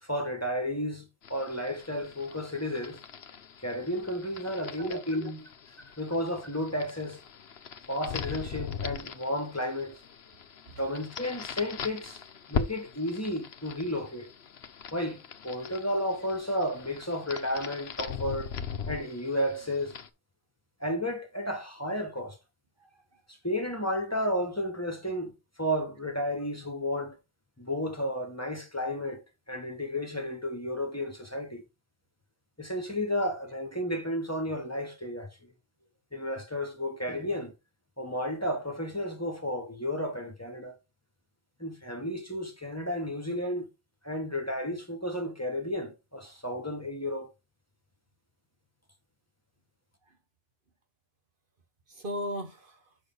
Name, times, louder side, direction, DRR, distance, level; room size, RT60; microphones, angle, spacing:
voice 1, 0.0-3.0 3.6-5.4 6.0-7.2 7.9-10.0 10.8-12.2 12.5-14.3 14.9-18.5 18.9-19.9 20.8-22.4 23.3-25.3 25.6-27.2 27.6-29.2 29.5-31.6 32.6-35.5 36.1-37.5 38.0-40.7 41.6-43.7 44.0-47.3, left 1 dB, 15° left, 1.7 m, -32 dB
sound 1, 1.2-20.1, left 7 dB, 75° left, 1.1 m, -40 dB
voice 2, 4.4-5.3 10.6-10.9 22.8-23.2 50.0-50.2 51.9-53.0, equal, 55° right, 1.4 m, -39 dB
6.5 x 6.1 x 3.9 m
omnidirectional pair, 1.1 m